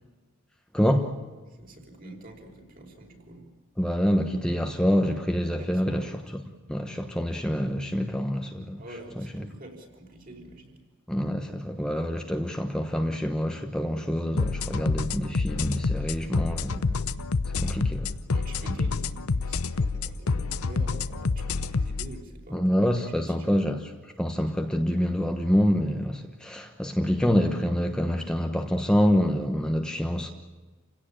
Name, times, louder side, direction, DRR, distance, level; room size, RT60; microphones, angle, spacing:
voice 1, 0.7-1.2 3.8-6.4 6.7-9.5 11.1-17.0 17.6-18.1 18.7-18.8 22.5-30.3, equal, 5° left, 1.2 m, -26 dB
voice 2, 1.6-3.5 5.6-6.1 8.8-10.8 18.3-22.7 23.2-23.6, right 1 dB, 40° right, 5.3 m, -46 dB
sound 1, 14.4-22.1, left 4 dB, 85° left, 0.8 m, -28 dB
29.0 x 17.0 x 8.9 m
head